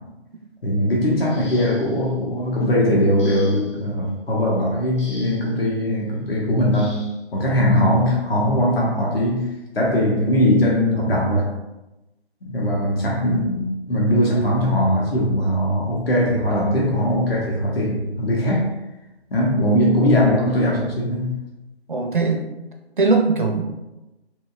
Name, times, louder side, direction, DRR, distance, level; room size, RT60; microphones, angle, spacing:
voice 1, 0.6-7.0 7.3-9.5 9.7-11.5 12.5-18.7 19.3-21.4, equal, 60° left, -3 dB, 0.7 m, -20 dB
sound 1, 1.2-2.1 3.2-3.8 5.0-5.6 6.7-7.2 8.4-8.5 9.1-9.3, left 1 dB, 30° left, 0.7 m, -43 dB
voice 2, 21.9-22.4 23.0-23.6, right 3 dB, 50° right, 3 dB, 0.4 m, -19 dB
2.8 x 2.2 x 2.3 m, 0.99 s
figure-of-eight pair, 150°, 33 cm